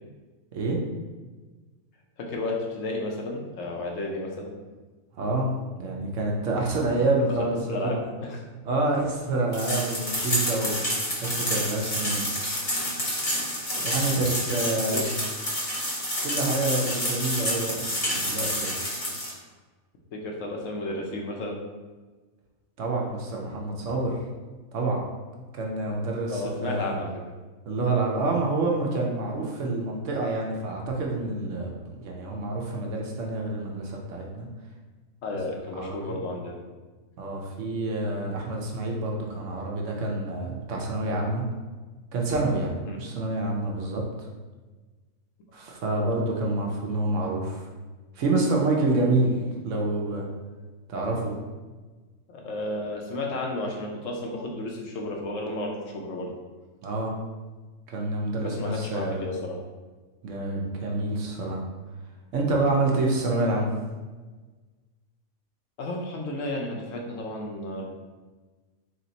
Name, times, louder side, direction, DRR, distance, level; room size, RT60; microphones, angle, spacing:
voice 1, 2.2-4.5 7.2-8.4 13.7-13.8 14.7-15.0 20.1-21.6 26.3-27.2 35.2-36.6 42.9-43.0 52.3-56.3 58.3-59.6 65.8-67.9, left 2 dB, 70° left, 0 dB, 1.0 m, -33 dB
voice 2, 5.1-5.5 5.8-8.1 8.6-10.8 11.2-12.2 13.8-15.1 16.2-17.8 18.0-18.7 22.8-24.2 24.7-25.0 25.5-27.0 27.7-34.5 35.7-36.1 37.2-41.4 42.1-44.0 45.5-47.6 48.2-49.4 49.6-50.3 50.9-51.3 56.8-57.1 57.9-59.2 60.2-61.6 62.3-63.7, right 2 dB, 65° right, -1 dB, 1.0 m, -27 dB
sound 1, 9.5-19.3, equal, 30° left, 0.9 m, -29 dB
3.4 x 2.9 x 3.9 m, 1.3 s
omnidirectional pair, 1.4 m